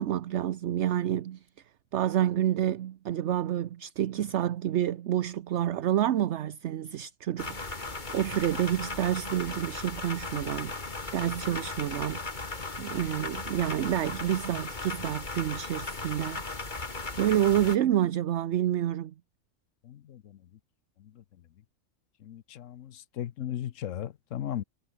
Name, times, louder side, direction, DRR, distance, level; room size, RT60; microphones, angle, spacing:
voice 1, 0.0-1.4 1.9-12.2 12.8-16.4 17.2-19.1, right 11 dB, 65° right, 1.0 m, -28 dB
sound 1, 7.4-17.8, left 3 dB, 40° left, 2.4 m, -37 dB
voice 2, 19.8-20.4 21.0-21.2 22.2-24.6, left 11 dB, 80° left, 1.1 m, -37 dB
omnidirectional pair, 1.3 m